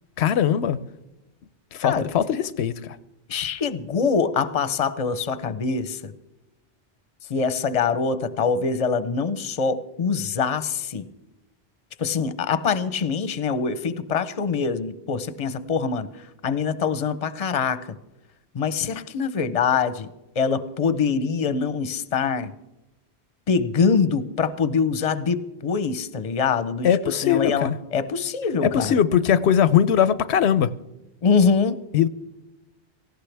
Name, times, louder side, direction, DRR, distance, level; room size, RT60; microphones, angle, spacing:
voice 1, 0.2-0.8 1.7-3.0 26.8-27.8 28.6-30.7 31.9-32.1, left 9 dB, 85° left, 0.9 m, -20 dB
voice 2, 3.3-6.1 7.3-11.1 12.0-18.0 18.5-20.1 20.4-22.5 23.5-28.9 31.2-31.8, left 5 dB, 40° left, 0.7 m, -24 dB
18.0 x 15.5 x 3.4 m
omnidirectional pair, 1.1 m